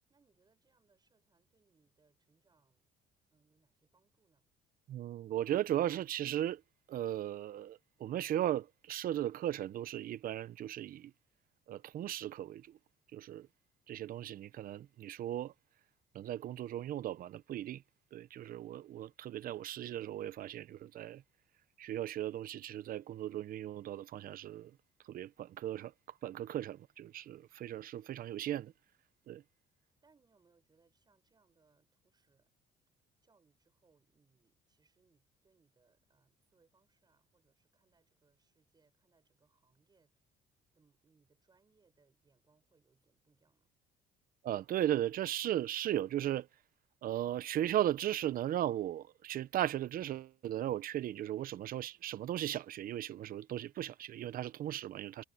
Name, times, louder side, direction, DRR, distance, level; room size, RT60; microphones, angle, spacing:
voice 1, 0.1-2.9 3.3-4.5 29.6-29.7 30.0-32.5 33.2-40.3 40.7-43.7, right 4 dB, 25° right, 6.6 m, -73 dB
voice 2, 4.9-6.6 6.9-11.1 11.7-12.8 13.1-13.5 13.9-15.5 16.1-17.8 18.1-21.2 21.8-24.7 25.1-25.9 26.2-28.7 29.3-29.4 44.4-46.5 47.0-55.2, right 12 dB, 55° right, 0.8 m, -37 dB
cardioid pair, 110°, 17 cm